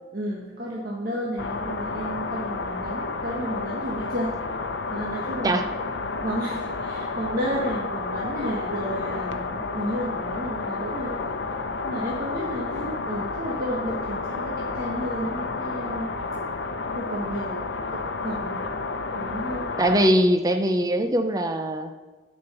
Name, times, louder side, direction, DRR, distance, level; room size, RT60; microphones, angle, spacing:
voice 1, 0.1-4.3 4.9-5.7 6.2-11.2 11.8-16.2 16.9-18.6 19.1-19.7, equal, 55° right, -4 dB, 1.4 m, -32 dB
sound 1, 1.4-20.1, left 3 dB, 85° left, 0.8 m, -31 dB
voice 2, 19.8-21.9, right 1 dB, 20° right, 6 dB, 0.6 m, -21 dB
10.5 x 5.3 x 6.9 m, 1.2 s
head